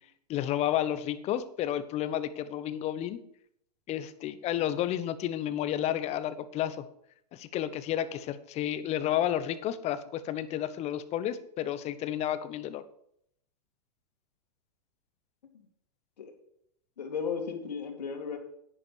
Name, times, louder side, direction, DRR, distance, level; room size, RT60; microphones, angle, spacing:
voice 1, 0.3-3.2 3.9-6.9 7.3-12.8, left 11 dB, 30° left, 13 dB, 1.0 m, -31 dB
voice 2, 17.0-18.4, left 6 dB, 75° left, 4 dB, 2.6 m, -35 dB
10.5 x 10.0 x 4.6 m, 0.71 s
hypercardioid pair, 110°, 21 cm